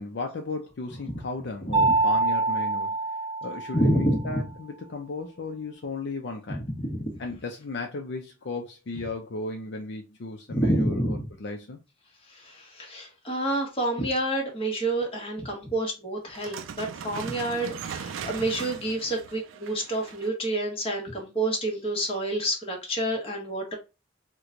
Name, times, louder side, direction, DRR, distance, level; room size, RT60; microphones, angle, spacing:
voice 1, 0.0-3.0 3.4-6.6 7.2-11.8, left 3 dB, 60° left, 0.5 m, -35 dB
Mallet percussion, 1.7-4.2, right 3 dB, 30° right, 0.7 m, -25 dB
voice 2, 3.7-4.4 6.8-7.2 10.5-11.3 12.3-23.7, right 1 dB, 30° left, 1.1 m, -28 dB
sound 1, 16.3-20.5, right 7 dB, 80° right, 0.4 m, -39 dB
3.0 x 2.2 x 3.7 m
head